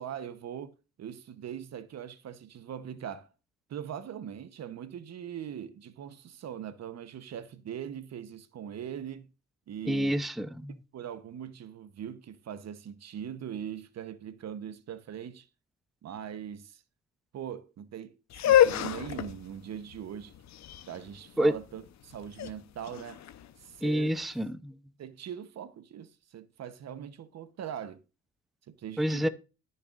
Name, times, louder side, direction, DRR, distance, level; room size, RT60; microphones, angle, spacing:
voice 1, 0.0-3.3 3.7-9.3 9.7-10.3 10.7-15.5 16.0-16.8 17.3-20.3 20.9-23.2 23.6-24.2 25.0-28.0 28.7-29.3, right 9 dB, 60° right, 1.0 m, -41 dB
voice 2, 9.9-10.7 21.4-21.5 23.8-24.7 29.0-29.3, right 1 dB, ahead, 0.6 m, -28 dB
sound 1, 18.3-24.2, left 11 dB, 65° left, 0.9 m, -28 dB
14.0 x 6.8 x 2.5 m
cardioid pair, 90°, 30 cm